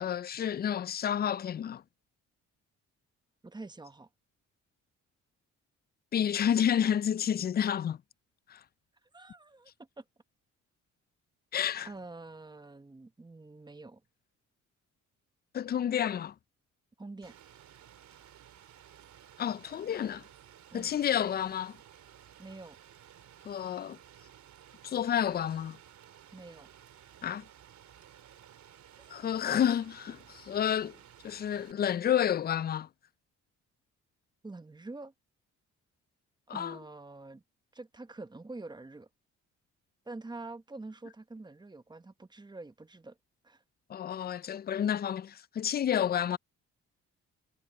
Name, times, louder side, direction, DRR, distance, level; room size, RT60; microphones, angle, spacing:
voice 1, 0.0-1.8 6.1-8.0 8.5-8.6 11.5-11.9 15.5-16.3 19.4-20.2 20.7-21.8 23.5-24.0 24.8-25.8 27.2-27.4 29.1-31.0 31.2-32.9 36.5-36.8 43.9-46.4, left 9 dB, 35° left, 0.4 m, -30 dB
voice 2, 3.4-4.1 9.1-9.7 10.0-10.1 11.8-14.0 17.0-17.3 20.7-21.0 22.4-22.8 26.3-26.7 29.0-29.2 34.4-35.1 36.5-37.4 37.7-39.1 40.1-43.2 43.4-43.6, right 2 dB, 15° right, 1.1 m, -46 dB
Rain, 17.2-31.7, right 10 dB, 65° right, 3.2 m, -55 dB
cardioid pair, 90°, 30 cm